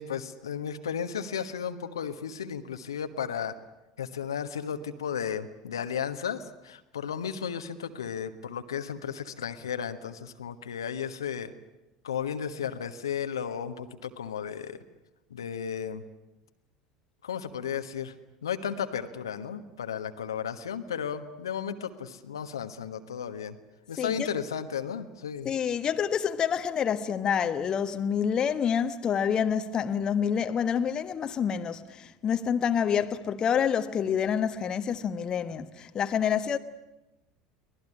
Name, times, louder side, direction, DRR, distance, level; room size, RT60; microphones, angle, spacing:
voice 1, 0.0-3.6 4.0-11.5 12.0-14.8 15.3-16.0 17.2-18.1 18.4-23.6 23.9-25.5, left 8 dB, 70° left, 1.4 m, -34 dB
voice 2, 24.0-24.3 25.4-36.6, left 8 dB, 30° left, 1.3 m, -27 dB
24.0 x 19.0 x 9.8 m
figure-of-eight pair, 70°, 2 cm